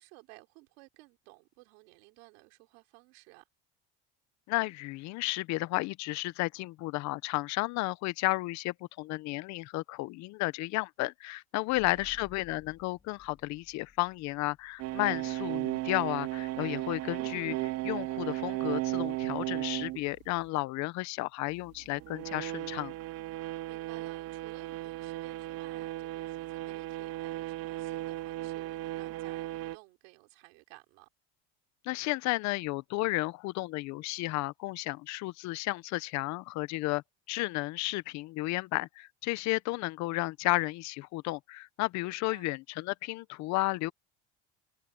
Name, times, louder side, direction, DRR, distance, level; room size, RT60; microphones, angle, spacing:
voice 1, 0.0-3.5 11.7-12.2 23.7-31.1 42.0-42.5, right 27 dB, 85° right, 3.7 m, -56 dB
voice 2, 4.5-22.9 31.8-37.0 37.3-43.9, left 20 dB, 65° left, 0.9 m, -33 dB
sound 1, 11.7-22.9, left 5 dB, 20° left, 2.8 m, -61 dB
sound 2, 14.8-20.0 21.8-29.8, right 17 dB, 50° right, 0.8 m, -35 dB
supercardioid pair, 120°, 31 cm